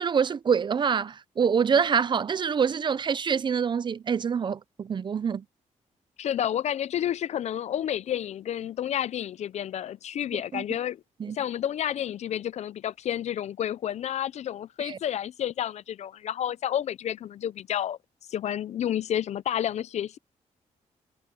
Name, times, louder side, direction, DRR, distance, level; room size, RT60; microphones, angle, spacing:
voice 1, 0.0-5.4 10.5-10.6 11.2-11.4 14.8-15.0, right 6 dB, 40° right, 0.6 m, -25 dB
voice 2, 6.2-11.0 11.3-18.0 18.3-20.2, left 10 dB, 65° left, 0.5 m, -30 dB
cardioid pair, 125°, 13 cm